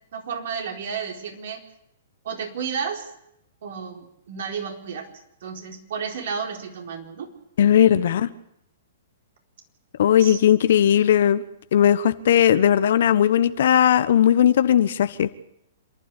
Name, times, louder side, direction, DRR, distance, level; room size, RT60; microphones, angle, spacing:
voice 1, 0.1-1.6 2.2-3.1 3.6-5.1 5.4-7.3 10.2-10.4, right 6 dB, 65° right, 4 dB, 4.3 m, -32 dB
voice 2, 7.6-8.3 10.0-11.4 11.7-15.3, left 10 dB, 65° left, 13 dB, 1.1 m, -18 dB
27.5 x 12.0 x 8.5 m, 0.80 s
hypercardioid pair, 120°, 0 cm